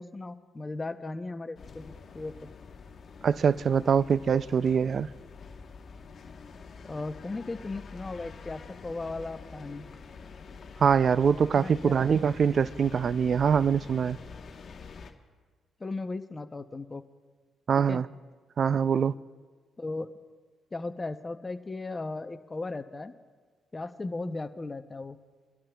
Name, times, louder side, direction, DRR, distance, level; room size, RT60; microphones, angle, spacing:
voice 1, 0.0-2.5 6.9-9.8 11.6-12.0 15.8-17.0 17.8-18.0 19.8-20.2 20.7-23.1 23.7-25.2, left 3 dB, 25° left, 0.7 m, -36 dB
sound 1, 1.6-15.1, left 5 dB, 50° left, 1.1 m, -46 dB
voice 2, 3.2-5.1 10.8-14.2 17.7-18.1 18.6-19.1, right 7 dB, 50° right, 0.3 m, -24 dB
23.5 x 12.0 x 2.3 m
cardioid pair, 90°, 0 cm